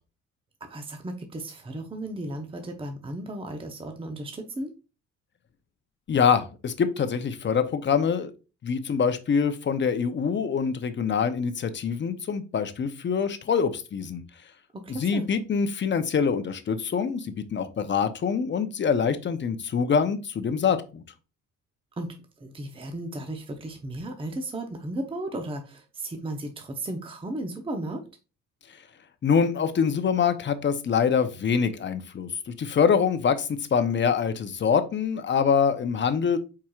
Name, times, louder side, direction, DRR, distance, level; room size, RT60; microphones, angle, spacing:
voice 1, 0.6-4.7 14.7-15.3 22.0-28.0, right 1 dB, 20° right, 4 dB, 0.7 m, -35 dB
voice 2, 6.1-8.3 8.6-14.2 15.0-21.0 29.2-36.4, left 6 dB, 40° left, 10 dB, 0.7 m, -25 dB
4.8 x 4.3 x 2.3 m, 0.32 s
cardioid pair, 90°, 30 cm